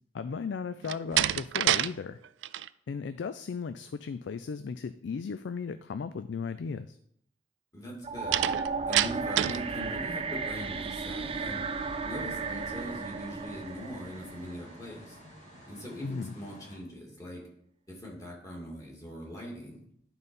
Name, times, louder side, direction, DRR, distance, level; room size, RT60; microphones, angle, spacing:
voice 1, 0.1-2.2 2.9-7.0 16.0-16.3, left 5 dB, 80° left, 11 dB, 0.4 m, -36 dB
Slam, 0.8-1.9 2.2-2.7 8.3-9.7, right 12 dB, 90° right, 0.3 m, -27 dB
voice 2, 7.7-8.5 8.9-11.7 12.0-15.2 15.7-17.5 17.9-19.8, equal, 20° left, -3 dB, 2.3 m, -41 dB
sound 1, 8.0-15.1, right 4 dB, 30° right, 0.5 m, -35 dB
sound 2, 11.2-16.8, left 1 dB, 45° left, 1.9 m, -52 dB
11.0 x 4.1 x 5.3 m, 0.71 s
head